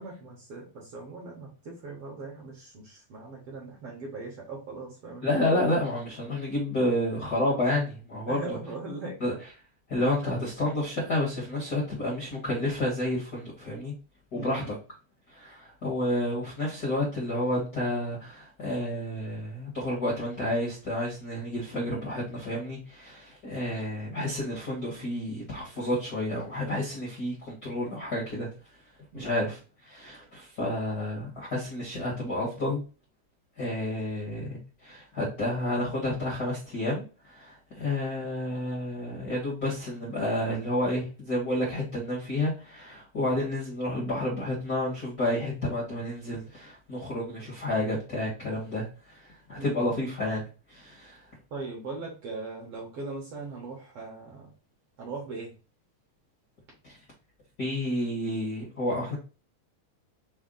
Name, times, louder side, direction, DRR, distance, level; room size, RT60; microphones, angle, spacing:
voice 1, 0.0-5.3 8.3-9.2 10.2-10.4 14.3-14.6 29.1-29.3 49.6-49.8 51.5-54.5 55.0-55.5, right 3 dB, 60° right, 1.7 m, -39 dB
voice 2, 5.2-8.6 9.2-9.3 9.9-13.9 14.3-14.8 15.3-28.5 29.1-32.8 33.6-51.2 56.8-57.0 57.6-59.1, left 1 dB, 45° left, 1.2 m, -30 dB
5.4 x 2.2 x 3.7 m
omnidirectional pair, 3.8 m